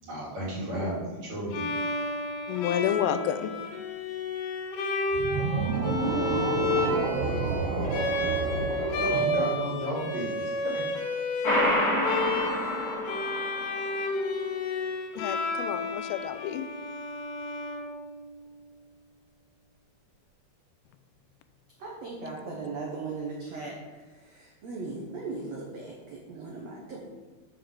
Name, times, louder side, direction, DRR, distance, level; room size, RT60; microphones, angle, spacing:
voice 1, 0.0-1.7 9.0-10.8, equal, 45° right, -7 dB, 3.8 m, -33 dB
Bowed string instrument, 1.5-18.4, left 2 dB, 65° left, 2.8 m, -31 dB
voice 2, 2.5-3.5 15.2-16.7, left 10 dB, 85° left, 11 dB, 2.8 m, -30 dB
sound 1, 5.1-10.4, right 4 dB, 90° right, 3.0 m, -30 dB
sound 2, 11.4-13.9, equal, 35° left, 1.7 m, -27 dB
voice 3, 21.8-23.8 24.1-27.0, right 3 dB, 70° right, -2 dB, 1.6 m, -38 dB
8.0 x 5.7 x 6.4 m, 1.3 s
omnidirectional pair, 4.8 m